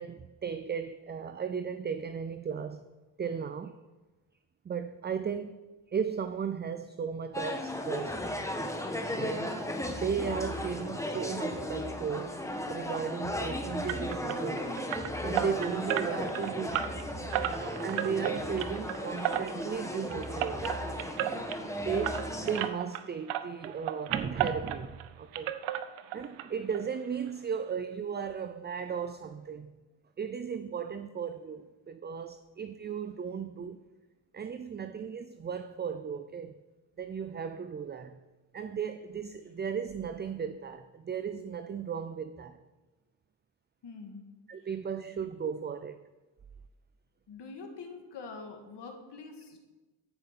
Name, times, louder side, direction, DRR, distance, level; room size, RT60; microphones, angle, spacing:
voice 1, 0.0-2.8 3.2-3.8 4.6-5.6 5.9-8.2 9.2-9.5 9.9-12.4 12.7-14.7 15.2-16.9 17.3-20.8 21.8-25.5 26.1-29.8 30.2-33.8 34.3-36.6 37.0-38.2 38.5-42.6 44.5-46.0, right 7 dB, 25° right, 0.4 m, -36 dB
sound 1, 7.3-22.7, left 1 dB, 5° left, 1.3 m, -35 dB
sound 2, 13.9-23.0 23.3-25.1 25.3-26.5 26.7-26.8 27.3-27.4 27.7-27.8, right 11 dB, 90° right, 0.7 m, -34 dB
voice 2, 43.8-44.3 44.6-44.7 47.3-49.6, left 4 dB, 60° left, 1.8 m, -45 dB
14.0 x 5.1 x 5.9 m
cardioid pair, 85°, 47 cm